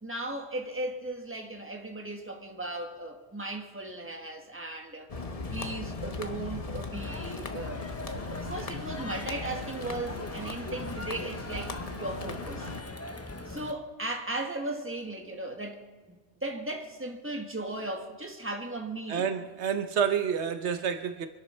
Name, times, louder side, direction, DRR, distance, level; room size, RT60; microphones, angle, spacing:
voice 1, 0.0-5.1 5.5-12.7 13.4-19.3, right 2 dB, 10° right, 1.5 m, -37 dB
sound 1, 5.1-12.8, left 3 dB, 35° left, 1.1 m, -38 dB
Crowd, 6.9-13.7, left 2 dB, 15° left, 0.7 m, -41 dB
voice 2, 19.1-21.3, right 7 dB, 80° right, 1.1 m, -29 dB
25.0 x 11.5 x 4.4 m
omnidirectional pair, 1.1 m